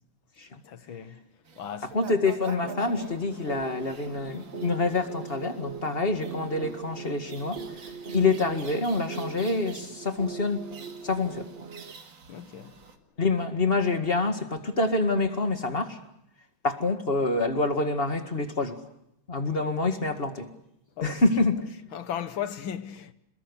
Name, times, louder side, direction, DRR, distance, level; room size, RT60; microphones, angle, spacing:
voice 1, 0.6-1.3 1.6-1.9 12.3-12.8 21.0-21.2 21.9-23.1, left 9 dB, 75° left, 2.0 m, -36 dB
sound 1, 1.4-13.0, right 5 dB, 70° right, 2.8 m, -48 dB
voice 2, 1.9-7.6 8.1-10.6 11.0-11.5 13.2-16.0 16.6-18.8 19.3-20.5 21.0-21.7, left 3 dB, 30° left, 2.0 m, -26 dB
sound 2, 2.6-11.9, right 4 dB, 35° right, 1.2 m, -40 dB
28.5 x 21.0 x 8.3 m
omnidirectional pair, 2.3 m